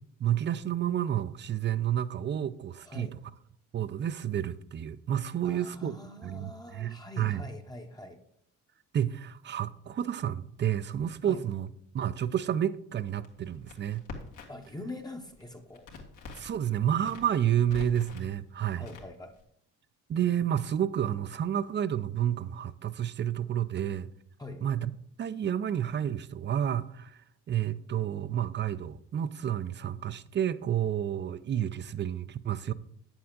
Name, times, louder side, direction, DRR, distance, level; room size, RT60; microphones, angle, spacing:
voice 1, 0.2-3.1 3.7-6.0 6.2-7.4 8.9-11.7 11.9-14.1 16.4-18.9 20.1-24.1 24.6-24.9 25.2-27.2 27.5-32.7, right 10 dB, 40° right, 0.5 m, -30 dB
voice 2, 2.8-3.1 5.4-8.2 11.2-11.4 14.5-15.9 18.8-19.3 24.4-24.6, left 2 dB, 15° left, 0.8 m, -43 dB
Crackle, 13.2-14.7 15.0-16.6 17.0-18.3 18.8-19.4, left 4 dB, 85° left, 1.7 m, -45 dB
8.3 x 7.1 x 3.7 m
cardioid pair, 90°, 30 cm